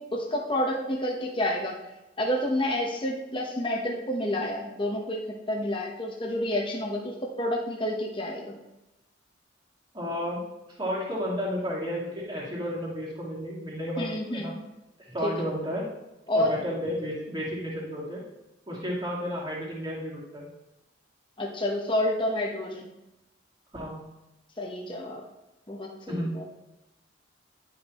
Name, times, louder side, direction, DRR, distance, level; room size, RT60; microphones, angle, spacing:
voice 1, 0.0-1.8 2.2-8.5 14.0-14.6 15.2-15.5 16.3-16.5 21.4-22.9 24.6-25.2 25.7-26.4, left 1 dB, 25° left, -1 dB, 1.0 m, -29 dB
voice 2, 9.9-10.4 10.8-14.5 15.1-15.9 16.3-18.2 18.7-20.5 23.7-24.0 26.1-26.3, equal, 25° right, -5 dB, 2.1 m, -32 dB
10.5 x 5.4 x 3.1 m, 0.98 s
head